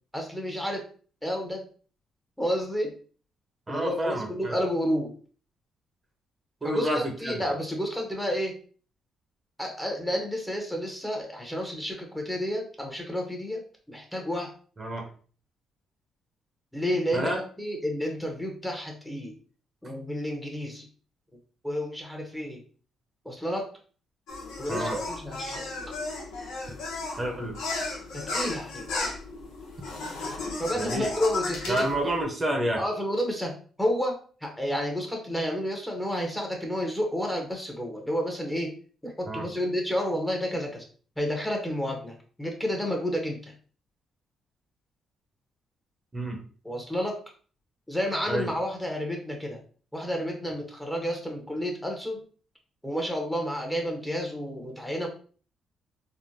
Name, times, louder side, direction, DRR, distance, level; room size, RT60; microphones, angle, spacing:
voice 1, 0.1-0.8 1.2-1.6 2.4-2.9 3.7-5.1 6.6-8.5 9.6-13.6 13.9-14.5 16.7-19.3 19.8-20.9 21.6-22.6 23.2-23.7 24.6-25.7 28.1-28.9 30.6-32.1 32.8-38.7 39.0-40.8 41.2-43.4 46.6-47.2 47.9-49.6 49.9-52.2 52.8-55.1, equal, 5° left, 1 dB, 0.9 m, -30 dB
voice 2, 3.7-4.5 6.6-7.4 14.8-15.1 17.1-17.4 24.7-25.0 27.2-27.6 30.7-31.1 31.7-32.8 39.3-39.5 46.1-46.4 48.3-48.5, right 1 dB, 25° right, 2 dB, 0.8 m, -29 dB
sound 1, 24.3-32.2, left 2 dB, 85° left, 0.8 m, -34 dB
3.6 x 2.1 x 2.6 m, 0.41 s
cardioid pair, 90°, 0 cm